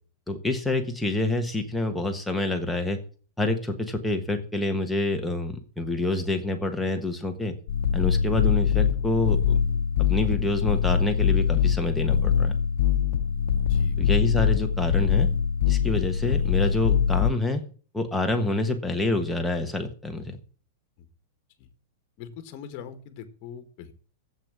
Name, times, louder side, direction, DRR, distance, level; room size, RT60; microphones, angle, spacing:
voice 1, 0.3-3.0 3.4-7.5 7.9-9.6 10.1-12.5 14.0-15.3 15.7-17.6 17.9-20.4, left 2 dB, ahead, 3 dB, 1.4 m, -27 dB
sound 1, 7.7-17.3, left 7 dB, 65° left, 1.0 m, -23 dB
voice 2, 13.7-14.0 21.0-21.1 21.6-21.7 22.2-23.9, left 8 dB, 35° left, 10 dB, 1.8 m, -42 dB
11.5 x 8.2 x 7.6 m, 0.40 s
supercardioid pair, 170°, 0 cm